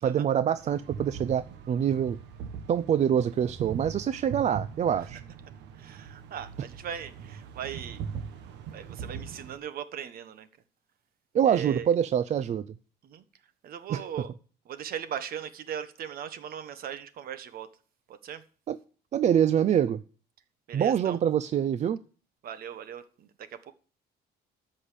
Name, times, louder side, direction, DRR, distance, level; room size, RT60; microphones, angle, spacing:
voice 1, 0.0-2.2 2.7-5.2 11.3-12.7 13.9-14.0 18.7-18.8 19.1-20.0 20.7-22.0, right 9 dB, 40° right, 13 dB, 0.5 m, -25 dB
sound 1, 0.6-9.6, right 7 dB, 85° right, 1.4 m, -40 dB
voice 2, 5.7-8.0 8.7-10.5 11.4-11.9 13.0-13.2 13.6-14.3 14.7-17.7 18.1-18.4 20.7-21.2 22.4-23.7, right 9 dB, 60° right, 12 dB, 1.3 m, -39 dB
13.0 x 5.7 x 8.4 m, 0.39 s
cardioid pair, 135°, 18 cm